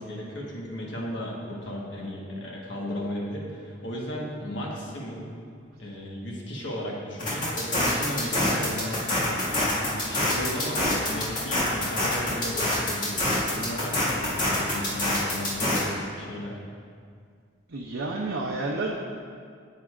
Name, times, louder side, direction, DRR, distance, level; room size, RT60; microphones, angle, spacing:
voice 1, 0.0-5.3 5.8-15.9 16.1-16.6, equal, 65° left, -2 dB, 1.4 m, -35 dB
sound 1, 7.2-15.8, left 1 dB, 45° left, 2.0 m, -26 dB
voice 2, 17.7-18.9, right 2 dB, 85° right, -2 dB, 0.7 m, -30 dB
9.6 x 8.3 x 2.5 m, 2.1 s
head